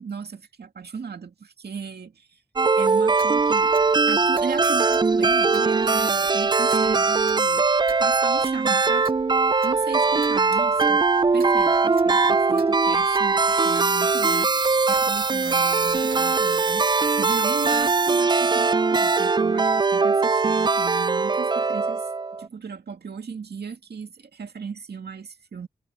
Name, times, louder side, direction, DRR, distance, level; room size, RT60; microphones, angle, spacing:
voice 1, 0.0-2.4 2.8-3.8 4.1-7.7 8.0-9.1 9.6-11.0 11.3-22.1 22.4-25.7, right 5 dB, 90° right, 2.2 m, -36 dB
sound 1, 2.6-22.5, right 4 dB, 25° right, 0.3 m, -21 dB
Clock, 3.1-18.0, right 4 dB, 60° right, 2.5 m, -48 dB
cardioid pair, 50°, 16 cm